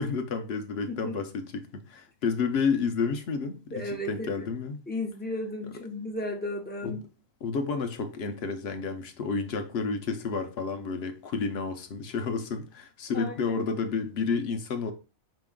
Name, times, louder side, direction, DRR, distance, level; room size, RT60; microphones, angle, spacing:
voice 1, 0.0-4.8 6.8-7.0 7.4-14.9, left 5 dB, 60° left, 0.8 m, -30 dB
voice 2, 0.9-1.2 3.7-4.5 4.9-7.0 13.1-13.6, left 1 dB, 15° left, 0.4 m, -34 dB
4.8 x 3.0 x 3.5 m
omnidirectional pair, 1.4 m